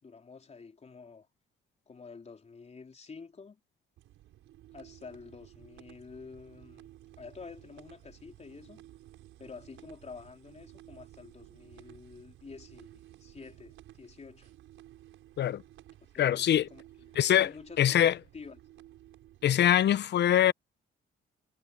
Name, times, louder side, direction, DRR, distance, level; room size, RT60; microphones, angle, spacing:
voice 1, 0.0-1.3 1.9-3.6 4.7-6.9 7.2-8.8 9.4-14.5 16.1-16.8 17.4-18.0 18.3-18.6, left 4 dB, 35° left, 3.9 m, -49 dB
sound 1, 4.0-20.0, right 14 dB, 85° right, 5.2 m, -55 dB
voice 2, 16.2-16.7 17.2-17.5 17.8-18.2 19.4-20.5, left 11 dB, 60° left, 0.8 m, -23 dB
cardioid pair, 90°, 20 cm